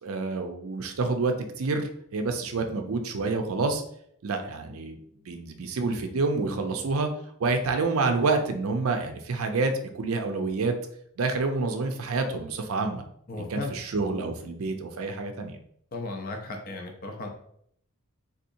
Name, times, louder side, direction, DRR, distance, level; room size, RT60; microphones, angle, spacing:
voice 1, 0.0-3.8 4.2-5.0 5.2-7.1 7.4-10.7 11.2-13.0 13.4-15.6, right 3 dB, 75° right, 6 dB, 0.5 m, -28 dB
voice 2, 13.3-13.8 15.9-17.3, left 2 dB, 45° left, 2 dB, 0.5 m, -35 dB
3.8 x 2.8 x 2.6 m, 0.68 s
head